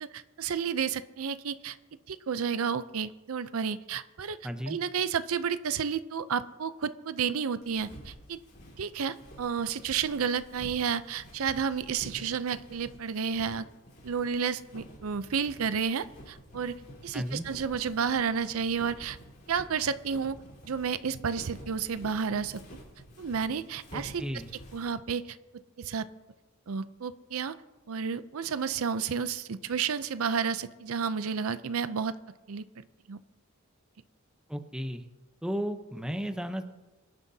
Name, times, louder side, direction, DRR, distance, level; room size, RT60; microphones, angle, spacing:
voice 1, 0.0-1.8 2.1-4.4 4.7-8.4 8.8-13.7 14.0-19.2 19.5-20.4 20.6-22.6 23.2-24.2 24.7-26.1 26.7-27.5 27.9-32.2 32.5-33.2, right 6 dB, 75° right, 13 dB, 0.5 m, -31 dB
voice 2, 4.4-4.8 17.1-17.5 23.9-24.5 34.5-35.0 35.4-36.6, equal, 5° right, 6 dB, 0.8 m, -34 dB
Walk footsteps, 7.6-25.0, equal, 50° left, 3.7 m, -50 dB
24.0 x 11.0 x 2.8 m, 1.1 s
head